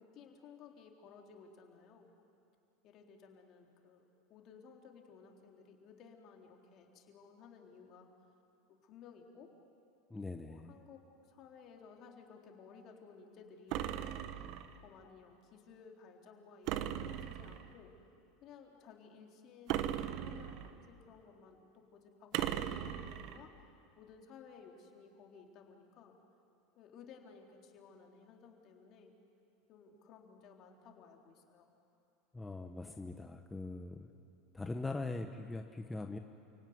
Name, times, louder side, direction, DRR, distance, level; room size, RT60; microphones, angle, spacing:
voice 1, 0.0-2.1 2.8-8.1 8.7-9.5 10.2-14.0 14.7-17.9 18.4-23.5 24.0-26.2 26.8-29.1 29.7-31.7, left 6 dB, 50° left, 2 dB, 3.8 m, -57 dB
voice 2, 10.1-10.7 32.3-34.1 34.5-36.2, left 2 dB, 10° left, 5 dB, 1.1 m, -41 dB
sound 1, 13.7-14.8 16.7-17.7 19.7-20.8 22.3-23.4, right 11 dB, 55° right, 1.3 m, -38 dB
29.5 x 17.5 x 9.6 m, 2.6 s
hypercardioid pair, 105°, 0 cm